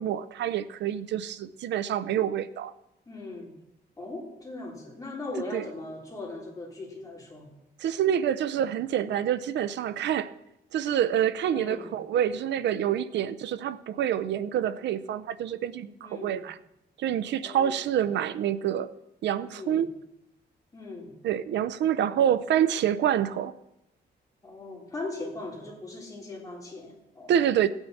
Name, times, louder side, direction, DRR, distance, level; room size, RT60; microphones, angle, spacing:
voice 1, 0.0-2.7 5.5-5.7 7.8-10.3 10.7-16.6 17.0-18.9 19.2-19.9 21.2-23.5 27.3-27.7, right 10 dB, 85° right, 0.5 m, -27 dB
voice 2, 3.0-3.5 4.0-7.5 11.5-11.9 16.0-16.4 17.4-17.8 19.4-19.9 20.7-21.1 24.4-27.3, left 2 dB, 20° left, 3.3 m, -39 dB
16.5 x 9.0 x 4.2 m
wide cardioid pair, 135°, 18 cm